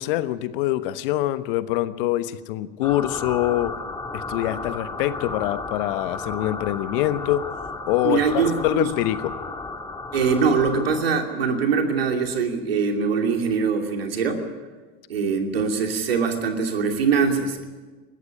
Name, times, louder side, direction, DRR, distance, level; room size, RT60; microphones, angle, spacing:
voice 1, 0.0-3.7 4.1-7.4 7.9-8.2 8.6-9.2, left 15 dB, 65° left, 13 dB, 1.2 m, -24 dB
sound 1, 2.8-11.0, left 3 dB, 15° left, 2.3 m, -33 dB
voice 2, 8.0-8.9 10.1-14.4 15.1-17.7, right 5 dB, 85° right, 4 dB, 2.8 m, -23 dB
20.0 x 14.5 x 9.9 m, 1.4 s
hypercardioid pair, 80°, 29 cm